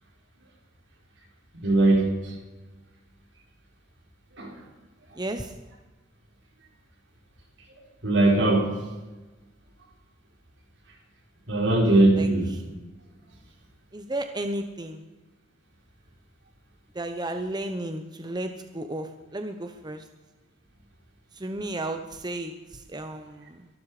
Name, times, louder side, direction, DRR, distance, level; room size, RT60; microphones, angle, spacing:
voice 1, 1.5-2.3 4.4-4.5 8.0-8.7 11.5-12.5, right 2 dB, 70° right, 1 dB, 4.4 m, -20 dB
voice 2, 5.1-5.5 12.2-12.6 13.9-15.0 16.9-20.0 21.3-23.7, right 1 dB, 25° right, 7 dB, 1.0 m, -33 dB
23.0 x 12.5 x 5.0 m, 1.2 s
head